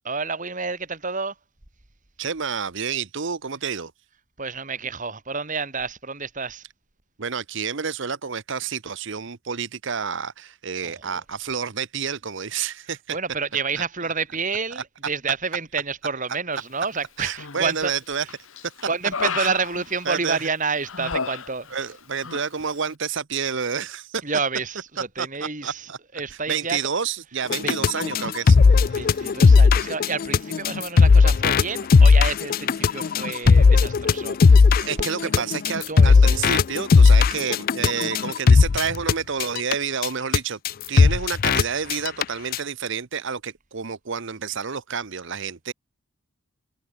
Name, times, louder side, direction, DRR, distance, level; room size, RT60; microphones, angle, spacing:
voice 1, 0.0-1.3 4.4-6.6 10.8-11.2 13.1-17.9 18.9-21.9 24.2-26.8 27.6-28.2 28.9-34.7 35.2-35.4 35.9-36.2, right 4 dB, 35° right, 2.4 m, -29 dB
voice 2, 2.2-3.9 7.2-13.2 14.8-14.9 17.2-18.3 19.4-19.5 20.1-20.4 21.7-24.2 25.2-25.3 25.6-26.0 26.5-29.4 34.8-40.6 40.9-45.7, right 6 dB, 55° right, 0.9 m, -29 dB
Human voice, 17.3-17.9 18.3-20.4 20.8-21.9 22.2-22.5, left 5 dB, 65° left, 1.6 m, -32 dB
sound 1, 27.5-39.1 39.4-39.7 40.0-40.1 40.3-40.4 40.6-40.7 41.0-41.6 41.9-42.2 42.5-42.6, left 4 dB, 40° left, 0.3 m, -16 dB
head